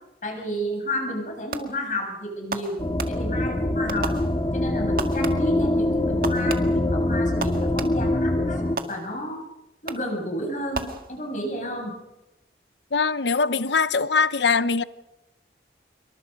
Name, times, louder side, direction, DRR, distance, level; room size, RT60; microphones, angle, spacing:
voice 1, 0.2-2.8 3.1-4.2 4.5-9.4 9.8-12.0, equal, 45° left, 7.5 m, -31 dB
Fireworks, 1.5-2.0 2.5-3.5 3.9-4.7 5.0-5.7 6.2-8.2 8.8-9.4 9.9-10.3 10.7-11.5, right 3 dB, 55° right, 2.0 m, -35 dB
sound 1, 2.8-8.8, left 1 dB, 25° left, 1.7 m, -24 dB
voice 2, 12.9-14.8, left 5 dB, 85° left, 1.0 m, -22 dB
27.0 x 24.0 x 5.4 m
head